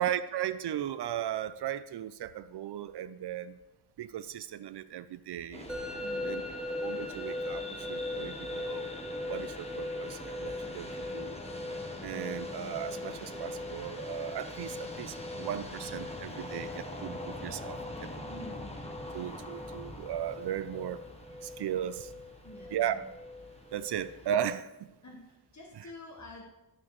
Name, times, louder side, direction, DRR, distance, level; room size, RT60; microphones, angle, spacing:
voice 1, 0.0-3.6 4.0-5.7 6.2-6.4 6.8-8.9 9.3-11.4 12.0-18.2 19.1-21.0 21.4-22.1 22.7-23.0 23.7-24.9 25.8-25.9, right 10 dB, 70° right, 13 dB, 0.5 m, -36 dB
sound 1, 5.5-24.5, left 1 dB, 15° left, 1.0 m, -44 dB
Musical instrument, 5.7-24.6, left 2 dB, ahead, 0.8 m, -41 dB
voice 2, 6.0-6.4 17.9-18.7 22.4-22.9 25.0-26.4, left 2 dB, 40° left, -1 dB, 1.3 m, -49 dB
12.0 x 6.0 x 3.1 m, 0.94 s
wide cardioid pair, 110°, 41 cm